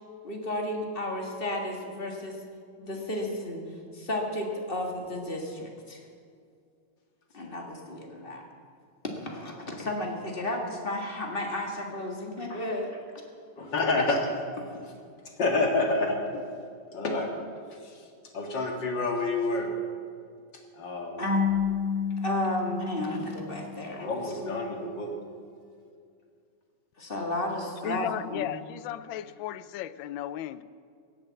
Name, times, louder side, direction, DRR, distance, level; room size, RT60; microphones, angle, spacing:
voice 1, 0.2-2.4 2.8-6.0 7.3-8.4 9.0-13.0 21.2-21.4 22.2-24.1 27.0-28.5, left 1 dB, 25° left, 1.9 m, -33 dB
voice 2, 13.6-14.2 14.6-14.7 15.4-16.4 16.9-18.1 18.3-19.7 20.7-21.2 24.0-25.1, left 2 dB, 55° left, 2.4 m, -28 dB
Marimba xylophone / Wood, 21.2-24.0, left 6 dB, 10° right, 1.9 m, -30 dB
voice 3, 27.8-30.6, left 12 dB, 75° left, 1.2 m, -35 dB
16.5 x 8.8 x 7.5 m
omnidirectional pair, 2.4 m